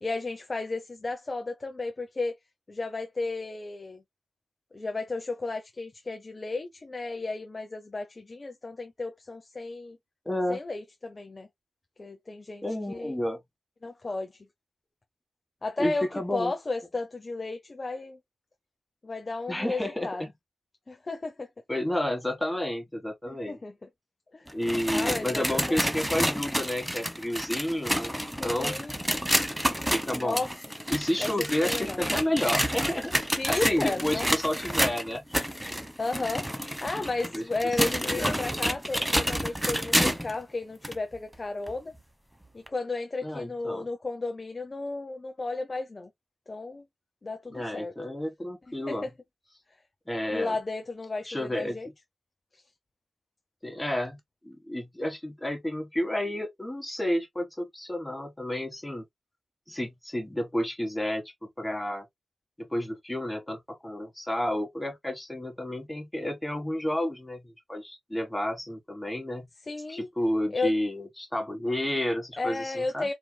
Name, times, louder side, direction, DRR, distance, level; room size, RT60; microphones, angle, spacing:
voice 1, 0.0-2.4 2.7-4.0 4.7-10.0 10.5-11.5 12.0-13.1 13.8-14.4 15.6-18.2 19.0-20.2 20.9-21.5 23.2-23.7 24.3-24.5 24.9-25.8 28.4-29.0 30.1-30.5 31.2-32.0 33.4-34.3 36.0-36.5 36.8-41.9 42.5-46.1 46.5-46.8 47.2-47.9 48.7-49.1 50.3-51.9 52.5-52.6 69.7-70.1 70.5-70.8 72.4-73.1, left 3 dB, 40° left, 0.6 m, -33 dB
voice 2, 10.2-10.6 12.6-13.4 15.8-16.5 19.5-20.1 21.7-23.6 24.5-28.1 28.4-28.8 29.9-30.4 30.9-35.8 37.3-37.4 37.8-38.4 43.2-43.8 47.5-49.1 50.1-50.5 51.2-51.8 53.6-59.0 59.7-62.1 62.6-69.5 69.9-73.1, left 1 dB, 10° left, 1.6 m, -31 dB
sound 1, 24.5-40.3 40.8-40.9 41.7-41.8 42.7-42.8, equal, 5° right, 1.0 m, -29 dB
4.5 x 3.2 x 2.2 m
cardioid pair, 45°, 0 cm